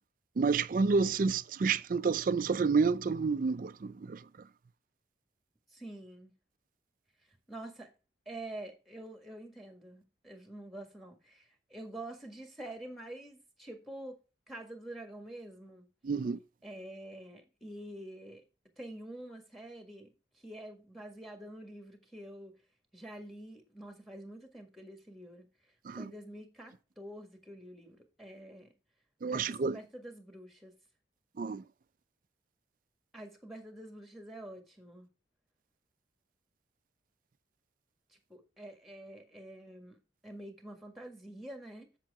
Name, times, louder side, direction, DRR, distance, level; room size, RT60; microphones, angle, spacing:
voice 1, 0.4-4.2 16.0-16.4 25.9-26.1 29.2-29.8 31.4-31.6, right 4 dB, 45° right, 0.4 m, -29 dB
voice 2, 5.7-6.3 7.5-7.9 8.2-14.2 14.5-15.9 16.6-18.4 18.8-22.6 22.9-25.5 26.0-28.7 29.3-30.7 33.1-35.1 38.1-40.0 40.2-41.9, right 1 dB, ahead, 1.6 m, -47 dB
7.5 x 7.5 x 3.6 m
head